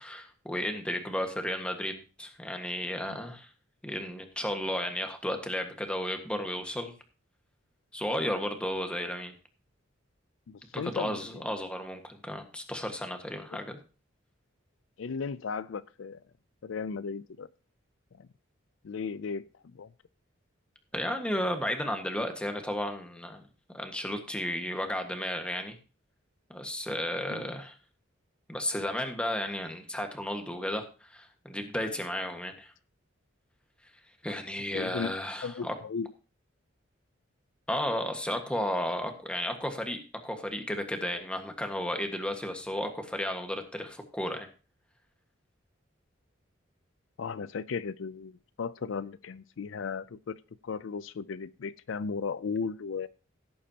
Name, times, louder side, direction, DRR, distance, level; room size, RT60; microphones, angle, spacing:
voice 1, 0.0-3.5 3.8-6.9 7.9-9.3 10.7-13.8 20.9-23.4 23.7-25.8 26.5-27.7 28.5-32.7 34.2-35.7 37.7-44.5, left 1 dB, 5° left, 1.5 m, -33 dB
voice 2, 10.5-11.5 15.0-16.2 16.6-17.5 18.2-18.3 18.8-19.9 27.3-27.5 34.7-35.1 35.4-36.2 47.2-53.1, left 5 dB, 70° left, 0.4 m, -36 dB
16.5 x 8.6 x 2.9 m
head